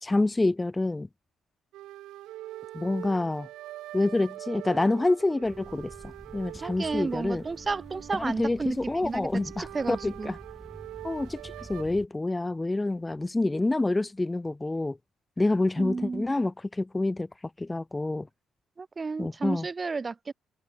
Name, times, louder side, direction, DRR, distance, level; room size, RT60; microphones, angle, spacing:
voice 1, 0.0-1.1 2.7-3.5 3.9-7.4 8.2-10.4 11.0-15.0 15.4-17.3 17.6-18.3 19.2-19.7, left 2 dB, 15° left, 1.3 m, -27 dB
sound 1, 1.7-11.8, right 15 dB, 90° right, 1.5 m, -44 dB
sound 2, 5.4-12.1, right 2 dB, 15° right, 2.6 m, -48 dB
voice 2, 6.6-10.3 15.8-16.3 18.8-20.3, right 4 dB, 30° right, 1.3 m, -32 dB
open air
cardioid pair, 90°, 0 cm